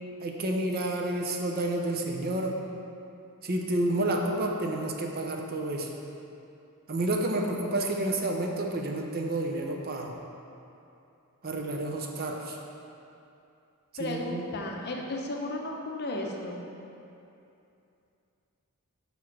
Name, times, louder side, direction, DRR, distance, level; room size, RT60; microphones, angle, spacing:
voice 1, 0.2-2.6 3.4-5.9 6.9-10.1 11.4-12.6 14.0-14.5, right 1 dB, 45° right, 2 dB, 0.6 m, -30 dB
voice 2, 14.0-16.7, left 2 dB, 50° left, 0 dB, 0.7 m, -34 dB
5.3 x 4.8 x 6.0 m, 2.7 s
head